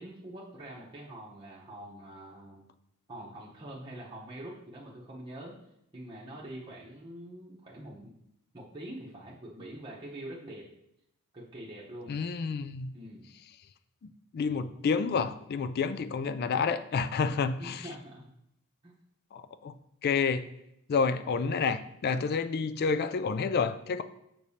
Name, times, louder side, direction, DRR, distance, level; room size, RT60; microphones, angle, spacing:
voice 1, 0.0-2.6 3.1-5.5 5.9-8.1 8.5-10.7 11.3-12.1 12.9-13.3 17.6-18.3 18.8-18.9, right 1 dB, 20° right, -6 dB, 0.9 m, -44 dB
voice 2, 12.1-12.9 14.0-17.8 19.3-19.7 20.0-20.4 20.9-24.0, left 5 dB, 45° left, 12 dB, 0.3 m, -29 dB
6.7 x 6.0 x 2.8 m, 0.80 s
head